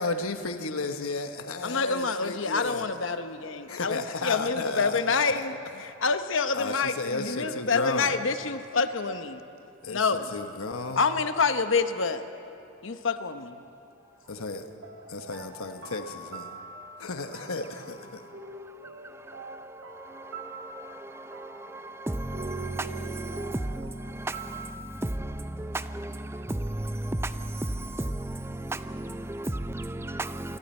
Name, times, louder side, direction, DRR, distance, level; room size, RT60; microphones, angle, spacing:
voice 1, 0.0-2.9 3.7-5.2 6.5-8.1 9.8-11.0 14.3-14.6 15.1-16.6 17.0-18.2, left 3 dB, 85° left, 1.1 m, -33 dB
voice 2, 1.6-9.4 9.9-10.3 11.0-12.3 12.8-13.6, left 4 dB, 65° left, 0.9 m, -27 dB
sound 1, 14.2-24.9, right 4 dB, 70° right, 2.4 m, -44 dB
voice 3, 15.6-16.0 16.3-30.6, right 1 dB, 10° right, 0.5 m, -35 dB
27.0 x 22.5 x 4.4 m
head